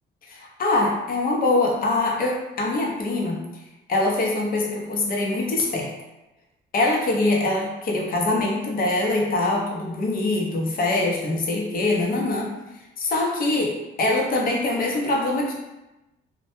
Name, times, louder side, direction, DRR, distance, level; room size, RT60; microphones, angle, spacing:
voice 1, 0.3-3.4 3.9-5.9 6.7-12.5 13.0-15.5, left 2 dB, 45° left, -1 dB, 0.6 m, -23 dB
2.1 x 2.1 x 2.9 m, 0.98 s
cardioid pair, 90°, 20 cm